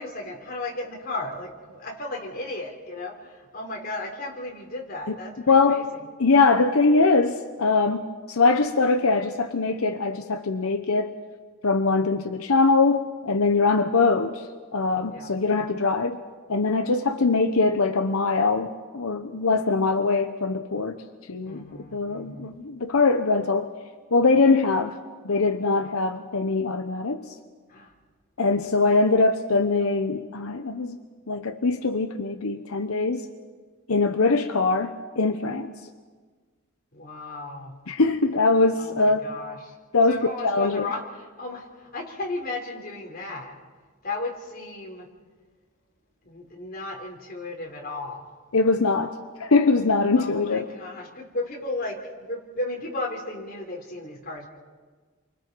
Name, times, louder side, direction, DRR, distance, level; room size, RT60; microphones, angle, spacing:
voice 1, 0.0-5.9 15.1-15.3 21.4-22.6 27.7-27.9 36.9-37.8 38.8-39.7 40.1-43.5 44.0-45.1 46.2-48.3 50.2-54.5, left 2 dB, 45° left, -1 dB, 3.9 m, -35 dB
voice 2, 5.5-11.2 11.6-14.5 14.7-16.2 16.5-21.0 21.3-23.8 24.1-25.0 25.2-27.3 28.4-31.0 31.3-33.3 33.9-35.7 37.9-39.3 39.9-40.9 48.5-50.7, left 3 dB, 85° left, 7 dB, 0.9 m, -22 dB
29.5 x 24.5 x 4.6 m, 1.5 s
head